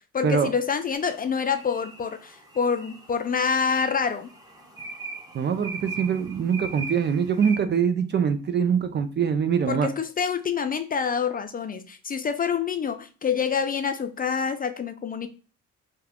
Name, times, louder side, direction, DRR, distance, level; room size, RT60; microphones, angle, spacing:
voice 1, 0.1-4.3 9.7-15.3, left 6 dB, 30° left, 9 dB, 0.4 m, -27 dB
sound 1, 1.0-7.6, right 3 dB, 10° right, 0.9 m, -40 dB
voice 2, 5.3-9.9, right 7 dB, 35° right, 10 dB, 0.4 m, -23 dB
2.7 x 2.4 x 3.5 m, 0.35 s
cardioid pair, 90°, 30 cm